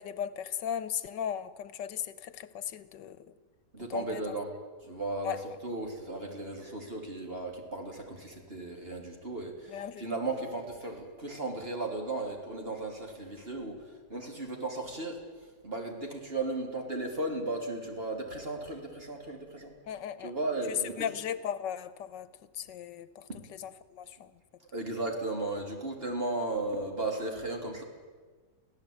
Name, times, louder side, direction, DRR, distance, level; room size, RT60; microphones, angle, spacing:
voice 1, 0.0-3.3 3.9-4.4 5.2-5.4 9.7-10.0 19.9-20.3 20.7-22.3 22.5-23.2 23.6-24.3, left 9 dB, 85° left, 15 dB, 1.6 m, -36 dB
voice 2, 3.7-4.5 4.8-19.8 20.2-21.1 23.3-23.4 24.7-27.8, right 2 dB, 30° right, 2 dB, 3.4 m, -35 dB
24.5 x 16.0 x 8.7 m, 1.4 s
omnidirectional pair, 1.9 m